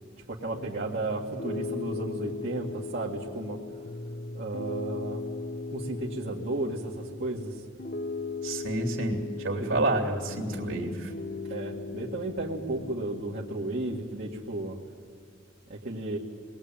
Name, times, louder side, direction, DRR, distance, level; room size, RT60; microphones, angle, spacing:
voice 1, 0.3-3.6 4.3-5.2 5.7-7.6 9.6-9.8 11.5-14.8 15.7-16.2, right 2 dB, 50° right, -4 dB, 2.2 m, -34 dB
Piano, 0.5-13.6, left 3 dB, 45° left, 0.8 m, -38 dB
voice 2, 8.4-11.1, right 2 dB, 70° right, -1 dB, 3.0 m, -29 dB
27.5 x 21.0 x 8.9 m, 2.2 s
head